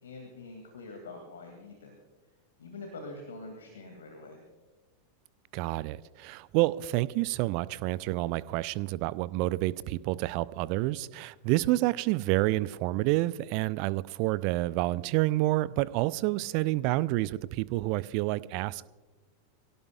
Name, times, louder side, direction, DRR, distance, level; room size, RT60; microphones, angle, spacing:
voice 1, 0.0-2.0 2.6-4.4, left 2 dB, 65° left, 2.4 m, -45 dB
voice 2, 5.5-18.9, right 18 dB, 45° right, 0.5 m, -29 dB
24.5 x 17.0 x 2.4 m
figure-of-eight pair, 90°, 0 cm